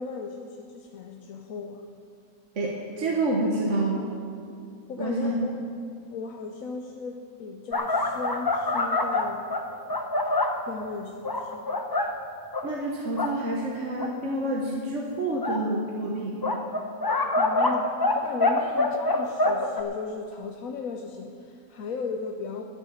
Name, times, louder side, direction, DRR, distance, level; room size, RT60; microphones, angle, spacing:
voice 1, 0.0-1.8 4.9-5.6 6.1-9.5 10.6-11.8 17.3-22.6, left 4 dB, 70° left, 2 dB, 1.2 m, -36 dB
voice 2, 2.5-4.1 5.0-5.4 12.6-16.5, right 2 dB, 55° right, -2 dB, 1.5 m, -28 dB
sound 1, 7.7-10.6 11.2-12.1 12.5-12.7 13.1-13.3 14.0-14.1 15.4-15.6 16.4-18.2 18.4-19.8, left 2 dB, 25° left, 0.6 m, -25 dB
14.0 x 7.0 x 8.4 m, 2.4 s
omnidirectional pair, 1.5 m